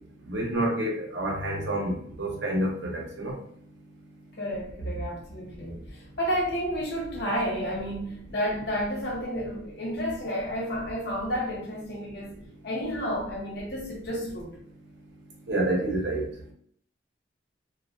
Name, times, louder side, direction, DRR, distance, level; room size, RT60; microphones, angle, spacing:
voice 1, 0.3-1.9 2.2-3.3 15.5-16.3, right 1 dB, 75° right, -1 dB, 0.8 m, -28 dB
voice 2, 4.4-12.4 12.6-14.5, equal, 65° left, -3 dB, 1.0 m, -31 dB
2.3 x 2.2 x 2.6 m, 0.65 s
head